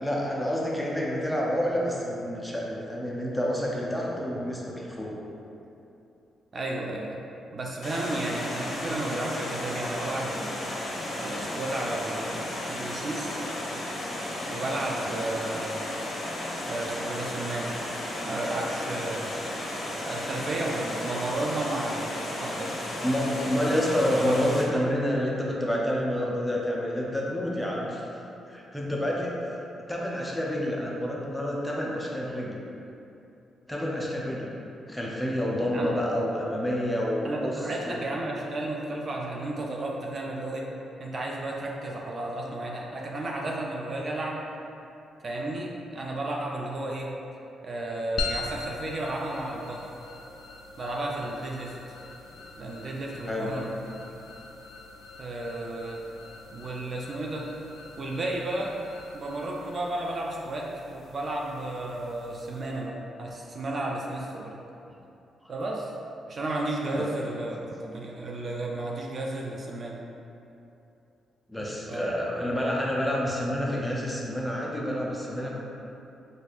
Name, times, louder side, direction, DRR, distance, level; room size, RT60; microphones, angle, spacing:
voice 1, 0.0-5.2 23.0-28.1 28.5-29.4 29.9-32.6 33.7-34.6 34.9-37.6 37.9-38.1 52.3-52.4 53.3-53.5 65.4-65.5 71.5-75.5, equal, 5° left, -4 dB, 0.6 m, -28 dB
voice 2, 6.5-7.2 7.5-10.6 11.2-13.4 14.5-15.8 16.7-17.8 18.2-19.3 19.9-22.7 23.5-24.3 35.7-35.9 37.2-40.7 41.0-44.5 45.2-47.1 47.6-49.8 50.8-51.8 52.6-53.8 54.1-54.2 55.2-56.0 56.5-57.5 58.0-58.7 59.1-64.5 65.5-65.9 66.3-70.0 71.9-72.2, right 2 dB, 45° right, -1 dB, 0.3 m, -33 dB
Water, 7.8-24.6, left 1 dB, 55° left, 0.7 m, -34 dB
sound 1, 48.2-62.8, left 3 dB, 70° left, 0.3 m, -42 dB
4.1 x 2.5 x 2.4 m, 2.8 s
cardioid pair, 80°, 0 cm